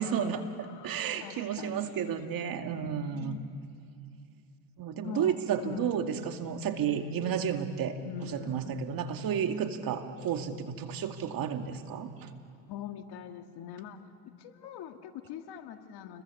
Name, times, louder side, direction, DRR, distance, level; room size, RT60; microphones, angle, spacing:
voice 1, 0.0-3.4 4.8-7.9 8.2-12.3, right 8 dB, 50° right, 6 dB, 2.3 m, -32 dB
voice 2, 0.6-3.4 5.0-6.0 8.0-8.8 12.7-16.2, left 9 dB, 65° left, 6 dB, 2.1 m, -44 dB
29.5 x 22.0 x 7.2 m, 2.4 s
supercardioid pair, 95°, 43 cm